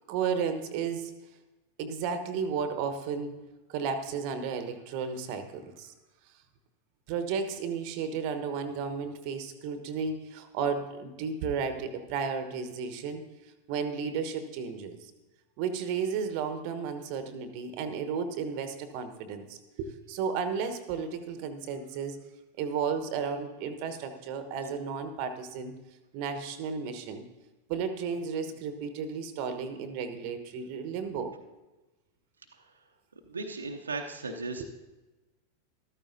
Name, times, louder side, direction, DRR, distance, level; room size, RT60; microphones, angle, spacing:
voice 1, 0.1-1.1 1.8-3.4 3.7-5.9 7.1-13.2 13.7-15.1 15.6-22.2 22.6-25.7 26.1-27.2 27.7-31.3 34.6-34.7, right 6 dB, 45° right, 9 dB, 1.1 m, -33 dB
voice 2, 32.5-32.8 33.1-34.7, right 3 dB, 75° right, 2 dB, 0.8 m, -37 dB
14.0 x 13.0 x 2.7 m, 1.1 s
figure-of-eight pair, 90°, 0 cm